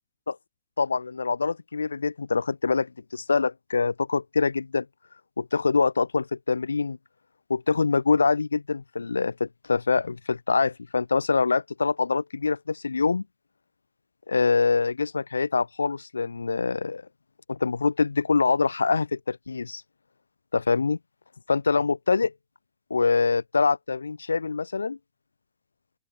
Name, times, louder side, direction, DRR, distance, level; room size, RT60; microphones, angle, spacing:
voice 1, 0.8-4.8 5.4-7.0 7.5-13.2 14.3-17.0 17.5-19.8 20.5-21.0 21.5-22.3 22.9-25.0, left 4 dB, 80° left, 1.5 m, -24 dB
open air
figure-of-eight pair, 110°, 0 cm